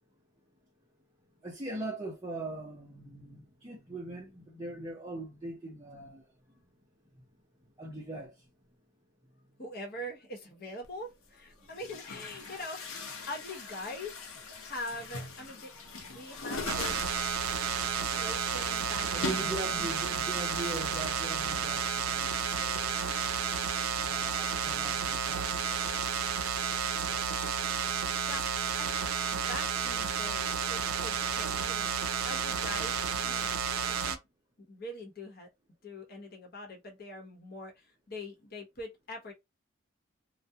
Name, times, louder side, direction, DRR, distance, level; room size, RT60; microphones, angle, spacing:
voice 1, 1.4-6.2 7.8-8.3 19.1-23.0 24.0-26.0 27.1-27.3, right 2 dB, 20° right, 0.6 m, -41 dB
voice 2, 9.6-17.3 17.9-19.9 28.3-33.5 34.0-34.2 34.6-35.5 35.8-39.3, left 1 dB, 45° left, 0.9 m, -43 dB
Chatter / Gurgling / Tap, 10.8-10.9 11.7-20.8, left 3 dB, 80° left, 0.7 m, -42 dB
sound 1, 16.7-34.2, right 6 dB, 85° right, 0.4 m, -31 dB
2.3 x 2.1 x 2.7 m
head